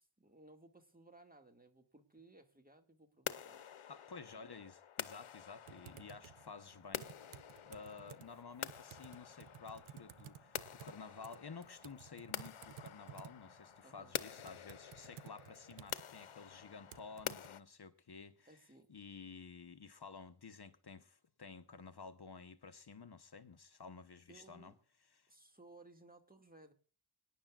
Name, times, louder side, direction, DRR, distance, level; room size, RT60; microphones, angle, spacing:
voice 1, 0.0-3.6 13.8-14.2 18.5-18.9 24.3-24.7 25.3-26.7, right 2 dB, 15° right, 2.0 m, -61 dB
sound 1, 3.3-17.6, left 9 dB, 90° left, 0.8 m, -48 dB
voice 2, 3.9-18.6 18.9-24.7 25.1-25.3, left 5 dB, 50° left, 1.0 m, -53 dB
Typing, 5.7-17.5, right 10 dB, 90° right, 0.7 m, -57 dB
25.0 x 10.0 x 2.4 m
wide cardioid pair, 80°, 48 cm